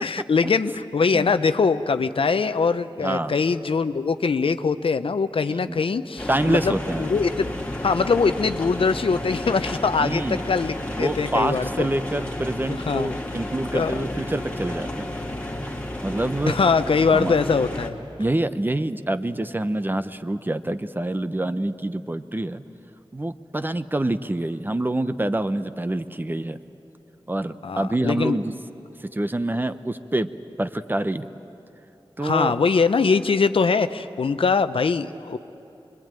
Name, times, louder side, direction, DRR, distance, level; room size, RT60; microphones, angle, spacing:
voice 1, 0.0-7.5 7.8-11.9 12.8-13.2 13.7-14.1 16.5-18.0 27.6-28.4 32.2-35.4, left 5 dB, 75° left, 11 dB, 0.7 m, -22 dB
voice 2, 3.0-3.3 5.7-5.8 6.3-7.1 10.0-10.4 11.0-15.1 16.0-16.6 17.1-17.3 18.2-22.6 23.1-26.6 27.3-28.5 29.1-30.3 30.6-31.3 32.2-32.5, right 1 dB, 20° right, 11 dB, 0.8 m, -26 dB
sound 1, 6.2-17.9, left 1 dB, 15° left, 2.3 m, -32 dB
25.0 x 22.0 x 9.0 m, 2.9 s
wide cardioid pair, 75°, 9 cm